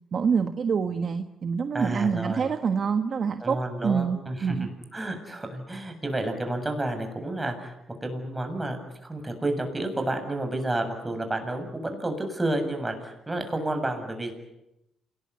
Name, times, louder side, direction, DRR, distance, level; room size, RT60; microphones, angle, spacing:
voice 1, 0.1-4.7, right 6 dB, 50° right, 8 dB, 1.4 m, -26 dB
voice 2, 1.7-2.5 3.4-7.7 8.0-14.3, right 1 dB, 15° right, 5 dB, 7.4 m, -30 dB
28.0 x 20.0 x 9.8 m, 0.87 s
cardioid pair, 90°, 0 cm